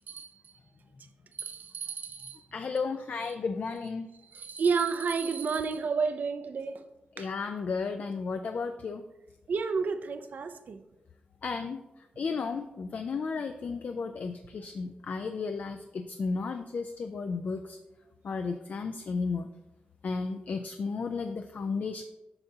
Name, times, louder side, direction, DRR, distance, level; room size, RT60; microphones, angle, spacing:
voice 1, 1.4-2.4 4.2-6.8 7.2-7.3 9.5-10.8, right 5 dB, 70° right, 9 dB, 0.5 m, -31 dB
voice 2, 2.5-4.1 7.2-9.0 11.4-11.8 12.2-17.8 18.2-19.5 20.0-22.0, left 4 dB, 60° left, 7 dB, 0.3 m, -33 dB
7.9 x 5.4 x 2.8 m, 1.0 s
wide cardioid pair, 90°, 3 cm